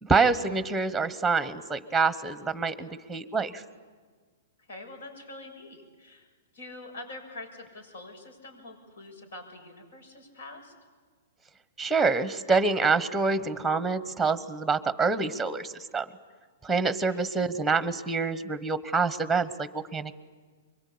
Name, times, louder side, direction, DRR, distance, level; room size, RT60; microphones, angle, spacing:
voice 1, 0.0-3.6 11.8-16.0 16.6-20.1, right 4 dB, 5° right, 13 dB, 1.1 m, -26 dB
voice 2, 4.7-10.7 17.1-17.2, left 2 dB, 75° left, 5 dB, 6.8 m, -45 dB
25.5 x 23.0 x 8.6 m, 1.5 s
hypercardioid pair, 130°, 0 cm